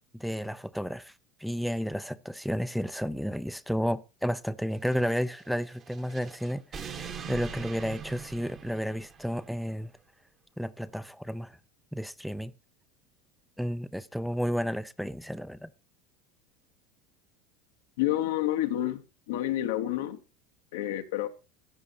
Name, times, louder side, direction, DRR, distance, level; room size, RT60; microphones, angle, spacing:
voice 1, 0.1-1.1 1.4-9.9 10.6-11.6 11.9-12.5 13.6-15.7, equal, ahead, 0.4 m, -32 dB
sound 1, 4.7-9.5, right 6 dB, 35° right, 1.1 m, -43 dB
voice 2, 18.0-19.0 19.3-20.2 20.7-21.3, left 13 dB, 85° left, 1.0 m, -29 dB
14.0 x 8.3 x 2.7 m
supercardioid pair, 125°, 0 cm